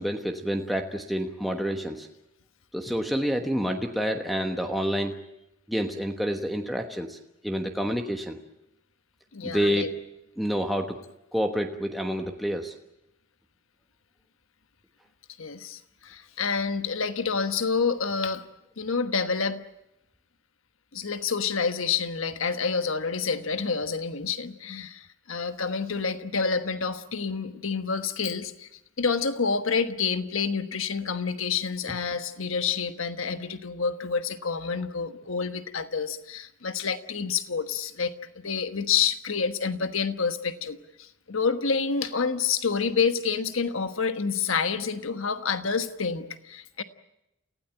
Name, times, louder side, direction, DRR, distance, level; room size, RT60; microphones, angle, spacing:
voice 1, 0.0-2.1 2.7-5.2 5.7-8.4 9.4-9.9 10.4-11.0 11.3-12.7, equal, ahead, 3 dB, 1.1 m, -28 dB
voice 2, 9.3-9.9 15.4-18.5 18.8-19.7 20.9-28.7 29.0-46.8, left 5 dB, 70° left, 10 dB, 1.3 m, -28 dB
29.0 x 16.5 x 8.9 m, 0.87 s
head